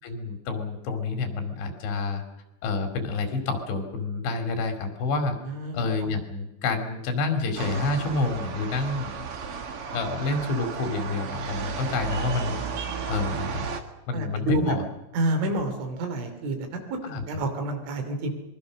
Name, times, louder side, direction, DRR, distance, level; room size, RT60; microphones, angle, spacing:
voice 1, 0.0-2.2 2.6-5.4 5.7-9.2 9.9-13.7 14.1-14.8 17.1-17.2, left 3 dB, 70° left, 6 dB, 5.0 m, -28 dB
voice 2, 5.4-5.8 14.1-14.8 15.1-18.3, right 1 dB, 90° right, 6 dB, 5.5 m, -29 dB
sound 1, 7.6-13.8, right 6 dB, 65° right, 1.4 m, -33 dB
25.0 x 22.5 x 6.4 m, 0.91 s
omnidirectional pair, 5.3 m